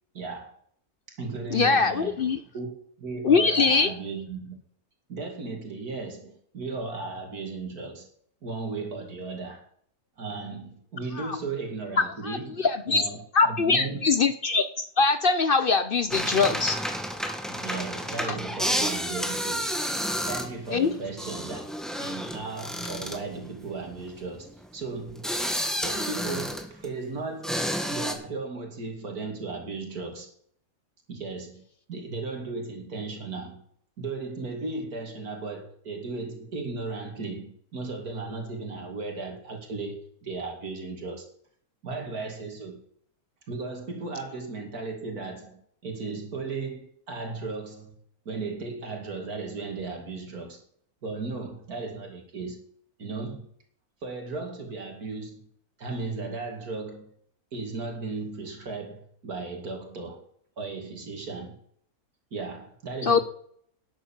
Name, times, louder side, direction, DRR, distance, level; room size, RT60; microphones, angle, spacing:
voice 1, 0.1-0.6 1.1-2.2 2.5-2.7 3.0-4.6 5.1-8.1 8.4-9.7 10.2-14.1 17.5-19.7 20.3-21.6 22.0-25.3 25.7-30.3 31.1-31.6 31.9-33.6 34.0-41.3 41.8-42.8 43.5-47.9 48.3-50.6 51.0-52.6 53.0-53.4 54.0-55.5 55.8-57.1 57.5-60.2 60.6-61.5 62.3-63.2, right 3 dB, 75° right, 2.9 m, -36 dB
voice 2, 1.5-2.4 3.2-3.9 11.2-11.4 12.2-13.0 13.3-16.8 18.3-18.4 20.7-21.0 63.0-63.2, left 4 dB, 55° left, 0.6 m, -23 dB
sound 1, 16.1-27.0 27.4-28.1, equal, ahead, 1.4 m, -31 dB
11.5 x 7.8 x 7.2 m
omnidirectional pair, 1.6 m